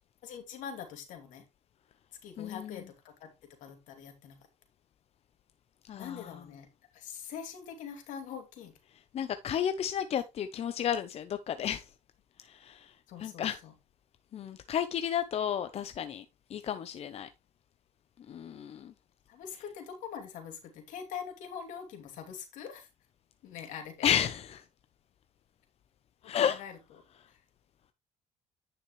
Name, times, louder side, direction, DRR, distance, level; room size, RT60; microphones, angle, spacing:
voice 1, 0.2-1.4 2.2-3.3 3.6-4.4 6.0-6.7 6.9-8.7 13.1-13.7 19.3-22.9 23.4-24.0 26.2-26.8 27.3-27.4, left 7 dB, 80° left, 2.7 m, -43 dB
voice 2, 2.4-2.8 5.8-6.4 9.1-11.9 12.4-12.9 13.2-13.6 14.3-16.2 16.5-17.3 18.3-18.9 24.0-24.6 26.2-26.6, left 9 dB, 55° left, 0.8 m, -32 dB
10.0 x 6.0 x 3.2 m
cardioid pair, 90°, 13 cm